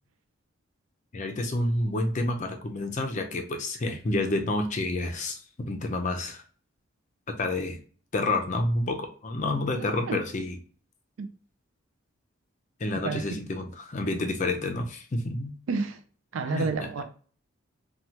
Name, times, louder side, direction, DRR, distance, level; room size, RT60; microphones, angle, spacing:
voice 1, 1.1-6.4 7.4-7.8 8.1-10.6 12.8-15.5 16.5-16.7, left 2 dB, 35° left, 0.5 m, -29 dB
voice 2, 9.7-10.2 11.2-11.3 13.0-13.2 15.7-16.0 16.3-17.0, right 4 dB, 70° right, 0.4 m, -30 dB
3.0 x 2.3 x 2.8 m
head